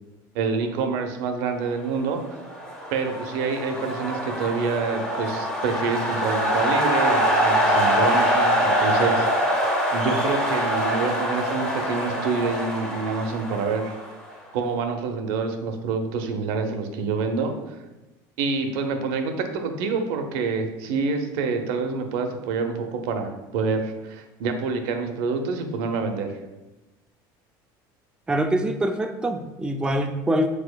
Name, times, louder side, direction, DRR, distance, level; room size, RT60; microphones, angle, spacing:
voice 1, 0.3-2.2 2.9-9.5 9.9-14.0 14.5-17.8 18.4-26.3, right 4 dB, 80° right, 5 dB, 0.6 m, -27 dB
sound 1, 2.4-14.3, equal, 5° left, 0.9 m, -24 dB
voice 2, 28.3-30.5, right 1 dB, 10° right, 5 dB, 0.3 m, -24 dB
4.8 x 4.3 x 2.2 m, 1.1 s
supercardioid pair, 110°, 10 cm